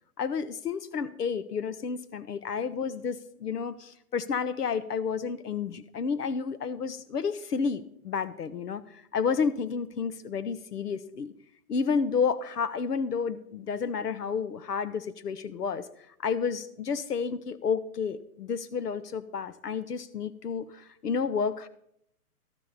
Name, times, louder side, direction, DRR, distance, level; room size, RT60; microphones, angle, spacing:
voice 1, 0.2-11.3 11.7-15.9 16.2-21.7, left 6 dB, 85° left, 14 dB, 1.1 m, -31 dB
12.5 x 12.0 x 4.2 m, 0.70 s
hypercardioid pair, 155°, 46 cm